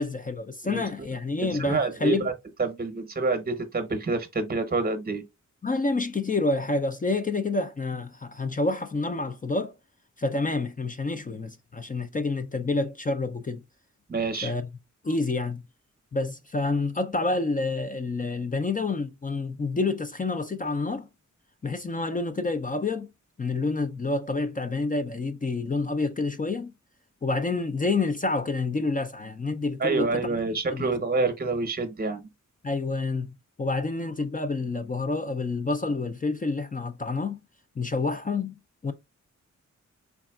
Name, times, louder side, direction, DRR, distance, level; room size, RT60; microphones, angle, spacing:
voice 1, 0.0-2.3 5.6-9.7 10.2-13.6 14.4-14.7 15.0-15.6 16.1-21.1 21.6-23.1 23.4-26.7 27.2-30.1 30.7-30.9 32.6-37.4 37.8-38.9, left 3 dB, 25° left, 0.4 m, -28 dB
voice 2, 1.4-2.3 2.6-5.2 14.1-14.5 29.8-32.3, right 3 dB, 30° right, 0.8 m, -27 dB
3.9 x 3.4 x 2.3 m
wide cardioid pair, 105°, 31 cm